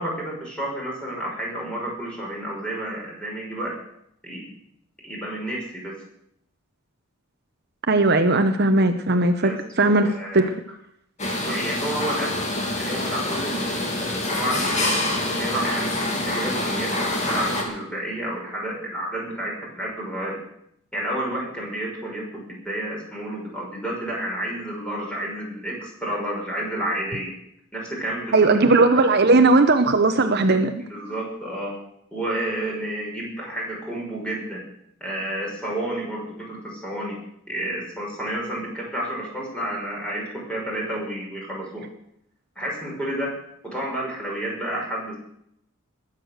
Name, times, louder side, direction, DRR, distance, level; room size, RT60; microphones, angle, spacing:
voice 1, 0.0-3.7 4.2-4.4 5.0-5.9 9.4-10.5 11.5-20.4 20.9-27.3 27.7-29.1 30.5-30.6 30.9-31.8 32.1-34.6 35.0-37.2 37.5-41.8 42.6-43.3 43.6-45.1, right 1 dB, 5° left, -3 dB, 5.7 m, -30 dB
voice 2, 7.9-9.5 9.8-10.5 28.3-30.7, right 2 dB, 50° right, 7 dB, 0.9 m, -18 dB
sound 1, 11.2-17.6, left 1 dB, 35° left, 2.7 m, -26 dB
20.5 x 8.4 x 6.6 m, 0.74 s
head